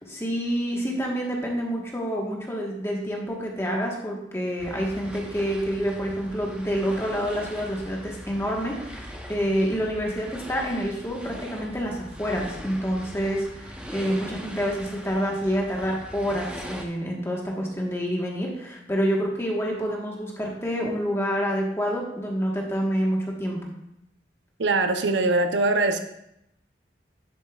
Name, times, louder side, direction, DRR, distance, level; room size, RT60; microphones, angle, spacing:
voice 1, 0.0-23.7, equal, 15° left, -1 dB, 1.3 m, -28 dB
sound 1, 4.6-16.8, equal, 5° right, 0.7 m, -40 dB
voice 2, 24.6-26.0, right 2 dB, 80° right, 7 dB, 0.7 m, -22 dB
10.5 x 7.2 x 2.4 m, 0.81 s
head